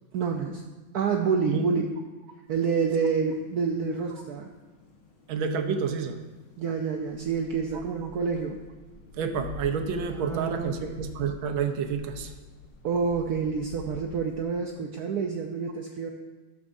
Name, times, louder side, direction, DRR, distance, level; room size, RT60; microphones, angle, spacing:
voice 1, 0.1-0.6 0.9-1.8 2.5-4.5 6.6-8.6 10.1-10.9 12.8-16.1, right 5 dB, 70° right, 3 dB, 0.9 m, -28 dB
sound 1, 2.5-14.6, left 4 dB, 70° left, 1.9 m, -47 dB
voice 2, 5.3-6.2 9.1-12.3, right 6 dB, 90° right, 6 dB, 1.6 m, -29 dB
13.0 x 7.4 x 2.6 m, 1.2 s
omnidirectional pair, 2.1 m